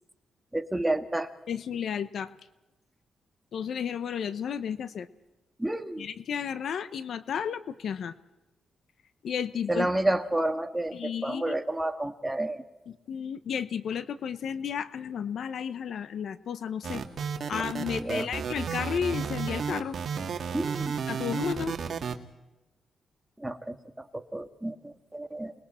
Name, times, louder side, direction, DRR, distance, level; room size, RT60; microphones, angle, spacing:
voice 1, 0.5-1.3 5.6-6.1 9.7-12.6 17.8-18.3 20.5-21.0 23.4-25.5, right 1 dB, 10° right, 7 dB, 1.6 m, -30 dB
voice 2, 1.5-2.3 3.5-5.1 6.0-8.1 9.2-9.9 10.9-11.5 12.9-17.0 17.5-20.0 21.1-21.7, left 7 dB, 70° left, 14 dB, 0.9 m, -33 dB
sound 1, 16.8-22.1, right 6 dB, 60° right, 2.0 m, -32 dB
29.5 x 21.0 x 4.4 m, 1.0 s
cardioid pair, 95°, 0 cm